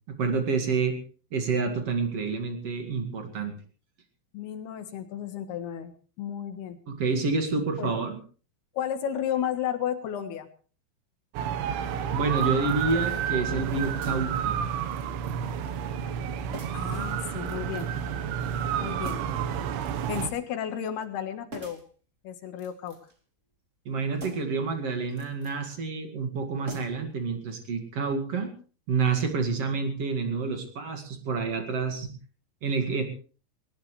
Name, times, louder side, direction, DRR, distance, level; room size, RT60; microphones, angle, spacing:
voice 1, 0.1-1.0 1.3-3.5 6.9-8.2 12.1-14.6 23.9-28.5 28.9-32.1 32.6-33.0, right 4 dB, 45° right, 5 dB, 2.3 m, -28 dB
voice 2, 4.3-6.8 7.8-7.9 8.7-10.5 16.7-17.9 18.8-19.2 20.1-21.8 22.2-23.0, left 9 dB, 65° left, 8 dB, 3.1 m, -33 dB
sound 1, 11.3-20.3, right 8 dB, 80° right, 3.5 m, -30 dB
sound 2, 12.4-12.8 14.0-14.5 14.9-15.4 15.6-15.8 16.5-16.9 17.5-18.0 19.0-19.5 19.8-20.4 21.5-21.9 22.5-23.2 24.1-24.6 25.1-25.6 26.6-27.2 27.5-27.6, right 1 dB, 25° right, 1.6 m, -44 dB
20.0 x 19.0 x 3.3 m, 0.40 s
omnidirectional pair, 5.4 m